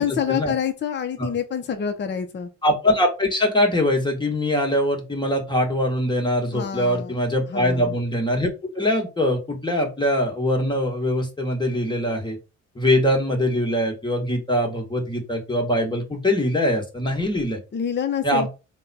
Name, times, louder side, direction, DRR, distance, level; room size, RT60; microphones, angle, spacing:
voice 1, 0.0-2.5 6.5-7.2 7.5-8.0 17.7-18.5, left 8 dB, 35° left, 5 dB, 0.7 m, -27 dB
voice 2, 2.6-12.4 12.7-17.6 18.2-18.5, left 1 dB, 15° left, 2 dB, 1.4 m, -22 dB
3.7 x 2.3 x 4.1 m, 0.29 s
cardioid pair, 90°, 30 cm